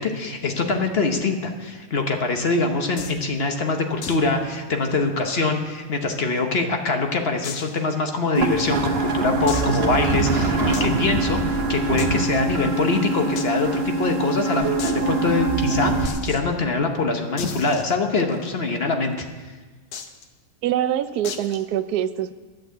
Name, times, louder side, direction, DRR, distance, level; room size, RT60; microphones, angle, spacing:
voice 1, 0.0-19.3, left 3 dB, 45° left, 4 dB, 1.0 m, -24 dB
sound 1, 3.0-3.2 4.0-4.3 4.6-4.7 5.0-5.1 5.8-6.6 7.4-7.8 8.4-8.5 9.5-10.0 10.7-10.9 12.0-12.4 13.4-13.5 13.7-13.8 14.1-14.2 14.8-15.0 16.0-16.4 17.4-18.5 19.9-20.2 21.2-21.6, left 6 dB, 80° left, 1.4 m, -35 dB
sound 2, 8.3-16.1, right 3 dB, 45° right, 1.3 m, -23 dB
voice 2, 20.6-22.3, right 11 dB, 80° right, 13 dB, 1.1 m, -24 dB
11.5 x 6.5 x 8.0 m, 1.3 s
omnidirectional pair, 1.6 m